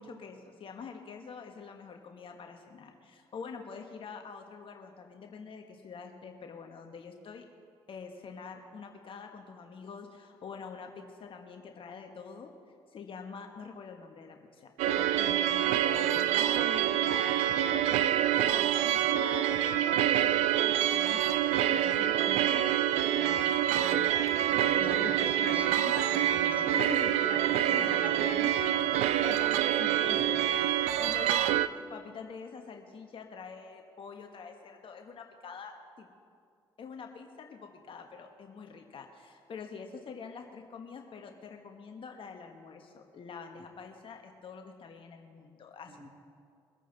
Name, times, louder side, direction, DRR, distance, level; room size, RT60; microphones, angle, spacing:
voice 1, 0.0-7.4 7.9-12.5 12.9-18.2 18.5-22.6 23.2-24.4 24.7-25.6 26.7-27.2 27.7-27.9 29.2-36.1 36.8-46.1, left 5 dB, 50° left, 4 dB, 1.4 m, -45 dB
sound 1, 14.8-31.7, right 11 dB, 75° right, 0.5 m, -26 dB
voice 2, 23.7-24.0 24.6-26.8 27.2-28.5 30.1-30.2 43.6-43.7 45.8-46.1, equal, 15° right, 3 dB, 3.3 m, -44 dB
23.0 x 9.1 x 4.0 m, 2.2 s
hypercardioid pair, 55°, 12 cm